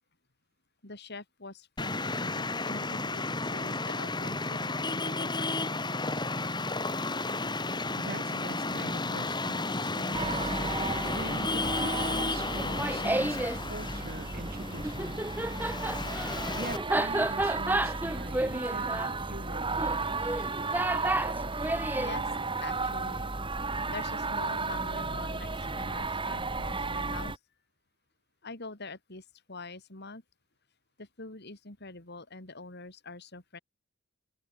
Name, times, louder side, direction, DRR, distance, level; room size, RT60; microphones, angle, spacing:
voice 1, 0.8-5.6 21.9-22.4 22.6-23.3 23.5-27.4 28.4-30.2 31.0-33.6, left 3 dB, 55° left, 3.4 m, -45 dB
Traffic noise roadway noise, 1.8-16.8, left 2 dB, 20° left, 3.9 m, -33 dB
voice 2, 8.0-10.5 11.1-15.2 16.5-20.5, right 1 dB, 50° right, 7.3 m, -43 dB
sound 1, 10.1-27.4, right 3 dB, 25° right, 3.2 m, -34 dB
Laughter, 12.5-13.6 14.8-22.1, right 1 dB, 10° right, 1.0 m, -31 dB
open air
head